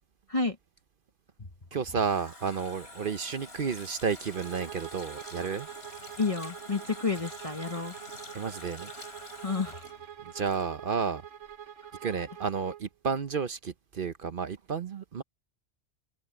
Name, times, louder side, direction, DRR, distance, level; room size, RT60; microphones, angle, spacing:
Water tap faucet, 1.5-11.2 11.4-11.6, left 2 dB, 55° left, 5.7 m, -48 dB
voice 1, 1.7-5.7 8.3-8.9 10.3-11.2 12.0-15.2, right 6 dB, 50° right, 0.9 m, -31 dB
Bowed string instrument, 4.3-12.9, right 9 dB, 85° right, 1.4 m, -45 dB
voice 2, 6.2-7.9 9.4-9.8, left 4 dB, 30° left, 1.2 m, -30 dB
omnidirectional pair, 1.3 m